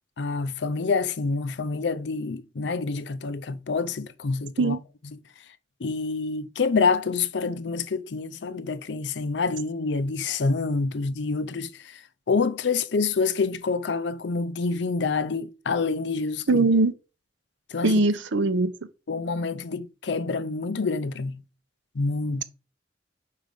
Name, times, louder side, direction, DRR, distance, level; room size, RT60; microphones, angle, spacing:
voice 1, 0.2-4.7 5.8-12.0 12.3-16.7 17.7-17.9 19.1-21.4 22.0-22.4, left 4 dB, 70° left, 0.5 m, -27 dB
voice 2, 16.5-16.9 17.8-18.7, right 2 dB, 85° right, 0.7 m, -21 dB
5.0 x 4.8 x 5.3 m
head